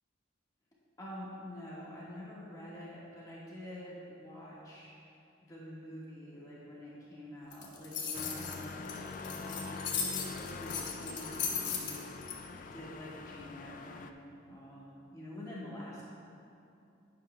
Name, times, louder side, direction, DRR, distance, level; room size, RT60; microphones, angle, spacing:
voice 1, 1.0-4.9 5.4-16.1, left 1 dB, 20° left, -7 dB, 1.4 m, -47 dB
sound 1, 7.5-12.3, left 6 dB, 65° left, 1.1 m, -36 dB
sound 2, 8.1-14.1, left 4 dB, 45° left, 0.3 m, -44 dB
11.0 x 9.3 x 2.2 m, 2.6 s
head